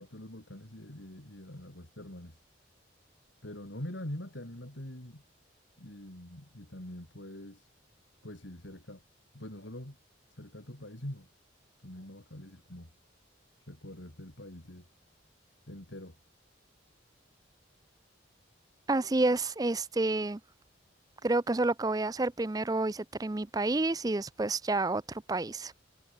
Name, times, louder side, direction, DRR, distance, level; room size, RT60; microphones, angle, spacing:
voice 1, 0.0-2.4 3.4-5.2 5.8-7.7 8.2-9.0 9.3-10.0 10.3-11.3 11.8-12.9 13.6-14.9 15.7-16.2, left 1 dB, 70° left, 3.7 m, -44 dB
voice 2, 18.9-20.4 21.2-25.7, right 2 dB, 20° right, 0.5 m, -29 dB
head